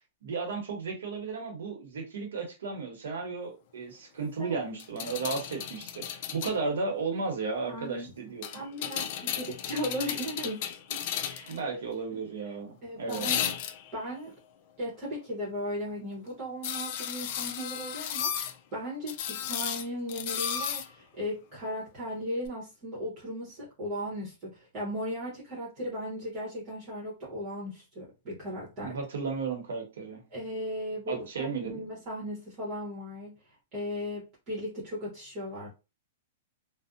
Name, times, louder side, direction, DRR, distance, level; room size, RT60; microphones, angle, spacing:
voice 1, 0.2-8.6 11.5-13.3 28.8-30.2 31.1-31.8, right 4 dB, 85° right, 0.9 m, -34 dB
sound 1, 4.8-6.6 8.4-11.6 13.1-14.0 16.6-18.5 19.1-20.9 22.5-22.6, left 9 dB, 40° left, 0.3 m, -34 dB
voice 2, 7.6-8.1 8.5-11.5 12.1-12.2 12.8-13.5 13.9-14.3 14.8-29.0 30.3-35.7, equal, 30° right, 1.0 m, -37 dB
2.6 x 2.0 x 2.5 m
hypercardioid pair, 165°, 0 cm